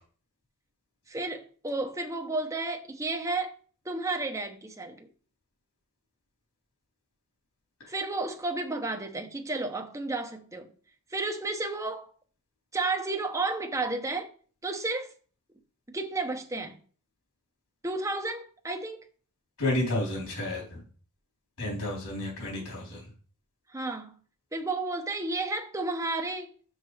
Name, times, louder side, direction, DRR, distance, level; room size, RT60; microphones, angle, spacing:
voice 1, 1.1-3.5 3.8-5.1 7.9-10.7 11.1-12.1 12.7-14.3 14.6-15.1 15.9-16.8 17.8-19.0 23.7-24.1 24.5-26.5, right 3 dB, 15° right, 0.9 m, -32 dB
voice 2, 19.6-20.8 21.6-23.0, left 1 dB, 90° left, 3.8 m, -31 dB
6.4 x 6.4 x 4.9 m
head